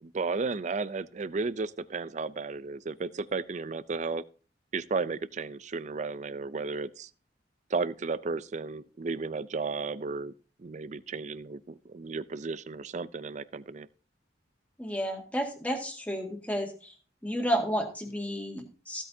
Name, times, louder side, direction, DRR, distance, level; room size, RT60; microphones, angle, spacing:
voice 1, 0.0-4.2 4.7-7.1 7.7-10.3 10.6-13.9, right 4 dB, 40° right, 0.5 m, -34 dB
voice 2, 14.8-16.9 17.2-19.0, equal, 10° left, 2.0 m, -31 dB
15.0 x 8.7 x 2.7 m
head